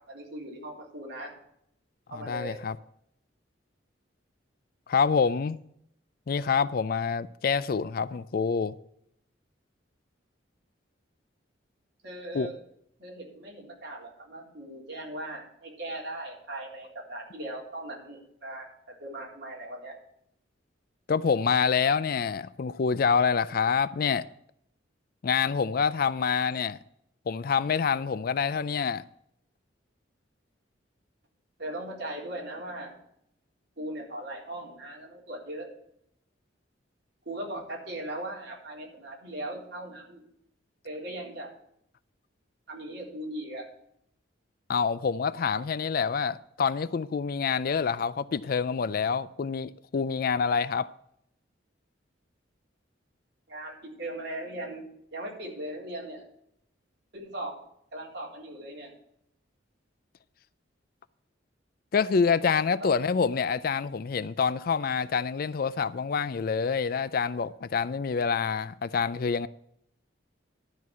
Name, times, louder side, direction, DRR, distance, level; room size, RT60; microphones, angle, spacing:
voice 1, 0.1-1.3 2.1-2.6 12.0-12.6 13.0-18.7 19.0-20.0 31.6-32.9 33.8-35.7 37.3-40.2 40.8-41.5 42.7-43.6 53.5-54.8 55.1-56.3 57.1-57.5 57.9-58.9 62.8-63.0, right 1 dB, 60° right, 3.9 m, -39 dB
voice 2, 2.1-2.8 4.9-5.6 6.3-8.7 12.3-12.5 21.1-24.3 25.2-26.8 27.3-29.0 44.7-50.9 61.9-69.5, left 6 dB, 50° left, 0.4 m, -27 dB
12.0 x 4.7 x 8.2 m
head